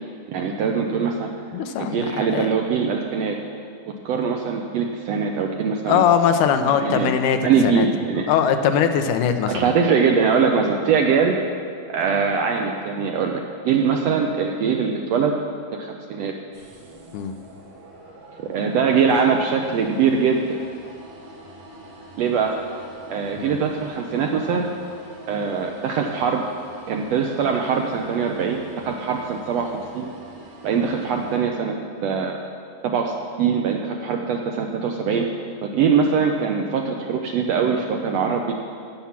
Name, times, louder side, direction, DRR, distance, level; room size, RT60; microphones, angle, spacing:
voice 1, 0.3-1.3 1.8-3.4 3.9-6.0 6.8-7.1 7.4-8.3 9.5-11.3 11.9-15.3 15.7-16.3 18.4-20.6 22.2-22.6 23.1-24.7 25.3-26.4 26.9-30.1 30.6-31.7 32.0-32.4 32.8-35.3 35.6-38.5, right 6 dB, 85° right, 2 dB, 1.4 m, -22 dB
voice 2, 1.5-2.5 5.9-7.9 8.3-9.7 17.1-17.3 23.4-23.6, left 8 dB, 80° left, 7 dB, 2.2 m, -21 dB
sound 1, 16.5-31.4, right 1 dB, 60° right, 2.8 m, -45 dB
16.0 x 7.2 x 5.8 m, 2.3 s
omnidirectional pair, 3.7 m